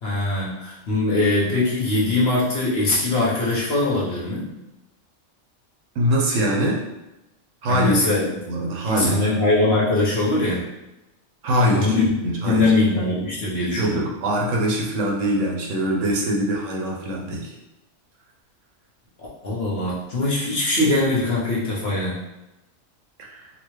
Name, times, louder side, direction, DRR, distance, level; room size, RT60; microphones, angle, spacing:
voice 1, 0.0-4.5 7.7-8.3 8.9-10.6 11.7-14.0 19.2-22.2, left 2 dB, 55° left, -6 dB, 1.2 m, -22 dB
voice 2, 6.0-6.8 7.6-8.0 8.5-9.3 11.4-11.9 12.2-12.7 13.8-17.5 23.2-23.5, equal, 80° right, -1 dB, 1.0 m, -23 dB
4.0 x 2.1 x 3.1 m, 0.97 s
omnidirectional pair, 1.3 m